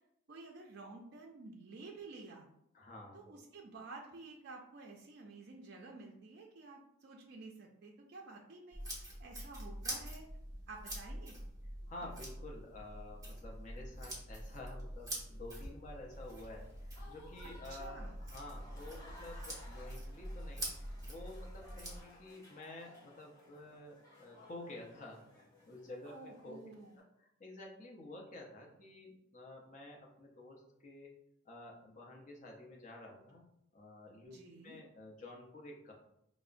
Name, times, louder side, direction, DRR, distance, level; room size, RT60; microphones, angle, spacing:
voice 1, 0.3-2.5 3.1-10.3 10.7-11.4 17.4-18.2 26.1-27.0 34.3-34.8, right 3 dB, 55° right, 0 dB, 0.4 m, -51 dB
voice 2, 2.7-3.2 11.9-25.2 25.6-26.6 27.0-31.1 31.4-33.5 33.7-34.4 34.6-35.9, left 2 dB, 40° left, -1 dB, 0.6 m, -51 dB
sound 1, 8.7-22.0, right 1 dB, 20° right, 0.9 m, -45 dB
Applause / Crowd, 16.1-27.0, left 1 dB, 15° left, 0.9 m, -60 dB
4.6 x 2.0 x 2.4 m, 0.76 s
head